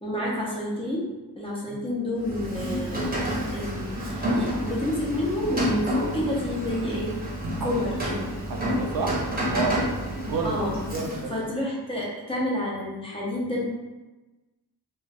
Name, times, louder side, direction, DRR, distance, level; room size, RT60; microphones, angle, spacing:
voice 1, 0.0-1.0 1.4-3.1 3.5-7.1 7.6-8.2 10.4-10.8 11.3-13.6, left 1 dB, 15° left, -6 dB, 0.7 m, -29 dB
Rain, 2.2-11.4, equal, 20° right, 0.8 m, -29 dB
voice 2, 8.5-9.2 9.5-9.8 10.3-10.6 10.9-11.4, right 4 dB, 55° right, 3 dB, 0.5 m, -29 dB
2.4 x 2.4 x 3.3 m, 1.1 s
wide cardioid pair, 105°, 42 cm